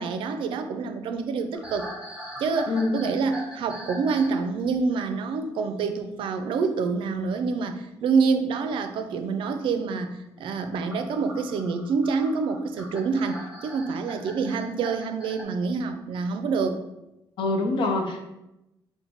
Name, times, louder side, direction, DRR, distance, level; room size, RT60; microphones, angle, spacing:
voice 1, 0.0-1.9 2.4-16.8, right 4 dB, 70° right, 7 dB, 0.4 m, -27 dB
sound 1, 1.5-4.4 4.6-4.9 7.1-7.4 8.7-8.8 10.7-15.4, right 1 dB, 10° right, 1.2 m, -41 dB
voice 2, 17.4-18.3, left 2 dB, 65° left, 3 dB, 0.7 m, -25 dB
4.4 x 2.1 x 4.0 m, 0.91 s
cardioid pair, 95°, 9 cm